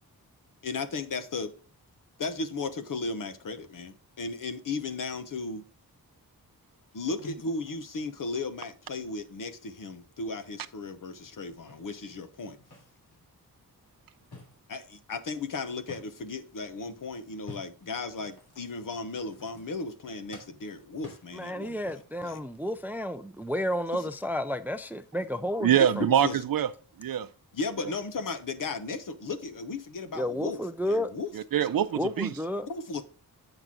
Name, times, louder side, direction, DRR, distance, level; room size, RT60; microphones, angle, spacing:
voice 1, 0.6-1.5 2.2-5.7 6.9-12.6 14.7-22.4 23.9-24.1 26.2-26.4 27.5-31.3 32.7-33.0, left 3 dB, 60° left, 0.9 m, -35 dB
sound 1, 11.2-13.3 13.7-16.4 17.3-20.1 20.3-22.3, left 2 dB, 80° left, 3.2 m, -52 dB
voice 2, 21.3-26.0 30.2-31.1 31.9-32.7, equal, 5° right, 0.3 m, -31 dB
voice 3, 25.6-26.7 27.0-27.3 31.3-32.3, right 9 dB, 65° right, 0.6 m, -24 dB
7.9 x 6.0 x 3.7 m
wide cardioid pair, 145°, 37 cm